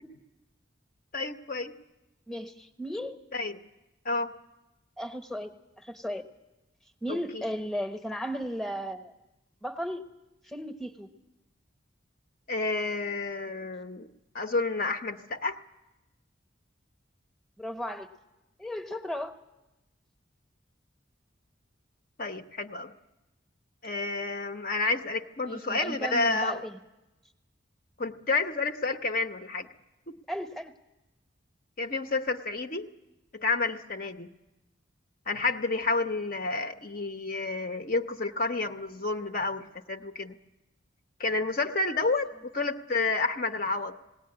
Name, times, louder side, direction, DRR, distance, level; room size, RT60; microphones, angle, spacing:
voice 1, 1.1-1.7 3.3-3.6 4.0-4.3 7.1-7.4 12.5-14.1 14.3-15.6 22.2-22.9 23.8-26.6 28.0-29.7 30.1-30.2 31.8-32.9 33.3-34.3 35.3-40.4 41.2-43.9, left 3 dB, 45° left, 7 dB, 0.8 m, -30 dB
voice 2, 2.3-3.2 5.0-6.2 7.0-9.1 9.6-10.1 10.5-11.1 17.6-18.1 18.6-19.3 25.5-26.8 30.3-30.7, equal, ahead, 6 dB, 0.9 m, -35 dB
19.5 x 17.5 x 9.6 m, 1.0 s
head